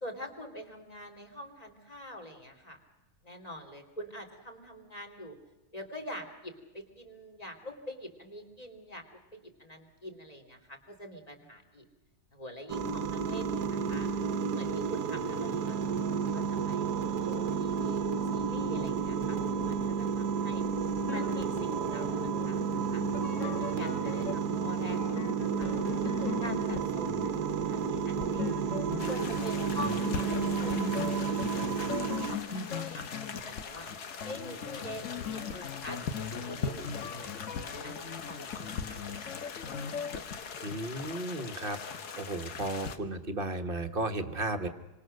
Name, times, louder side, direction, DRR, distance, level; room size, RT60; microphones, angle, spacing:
voice 1, 0.0-2.8 3.2-5.4 5.7-9.0 9.3-11.8 12.3-14.1 14.5-16.9 17.2-20.6 21.1-23.0 23.4-25.7 26.0-28.6 29.1-33.0 33.4-33.9 34.2-36.0 36.4-37.4 37.8-39.6, equal, 25° left, 4 dB, 2.9 m, -45 dB
sound 1, 12.7-32.4, right 6 dB, 85° right, 1.6 m, -31 dB
sound 2, 21.0-40.2, left 6 dB, 55° left, 1.4 m, -40 dB
sound 3, 29.0-43.0, left 6 dB, 75° left, 1.8 m, -41 dB
voice 2, 40.6-41.8 42.2-44.7, right 2 dB, 35° right, 10 dB, 1.4 m, -34 dB
26.5 x 25.5 x 6.5 m, 1.1 s
omnidirectional pair, 1.7 m